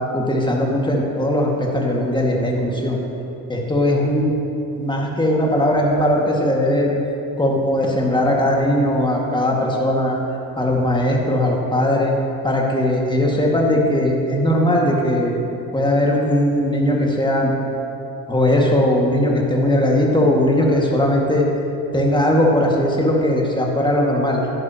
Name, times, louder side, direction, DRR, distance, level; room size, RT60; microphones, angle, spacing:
voice 1, 0.1-3.0 3.5-4.3 4.8-6.9 7.4-10.2 10.6-12.1 12.4-15.3 15.7-17.5 18.3-21.5 21.9-24.4, left 1 dB, 10° left, -1 dB, 2.0 m, -19 dB
10.5 x 9.3 x 3.0 m, 2.9 s
hypercardioid pair, 55°, 43 cm